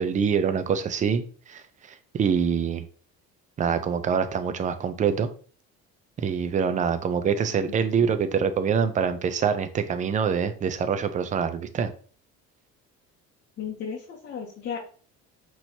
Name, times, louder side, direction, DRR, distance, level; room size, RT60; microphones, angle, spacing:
voice 1, 0.0-1.6 2.1-2.8 3.6-5.3 6.2-11.9, right 6 dB, 25° right, 0.4 m, -25 dB
voice 2, 7.7-8.1 13.6-14.8, left 7 dB, 35° left, 0.8 m, -35 dB
6.0 x 3.0 x 2.7 m
cardioid pair, 150°, 29 cm